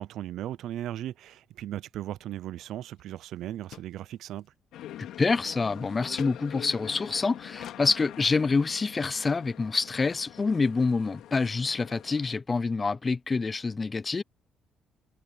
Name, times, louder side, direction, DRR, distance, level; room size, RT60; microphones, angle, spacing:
voice 1, 0.0-4.5, right 12 dB, 80° right, 0.4 m, -37 dB
sound 1, 3.0-3.1 3.3-3.4 3.7-3.9 4.3-4.5 4.9-5.5 6.2-6.3 7.6-7.8 8.4-8.5 9.0-9.2 9.5-9.6 9.7-9.8 10.1-10.3, left 10 dB, 75° left, 2.2 m, -47 dB
sound 2, 4.7-12.3, left 12 dB, 90° left, 2.6 m, -44 dB
voice 2, 5.0-14.2, left 4 dB, 25° left, 0.4 m, -27 dB
cardioid pair, 135°, 0 cm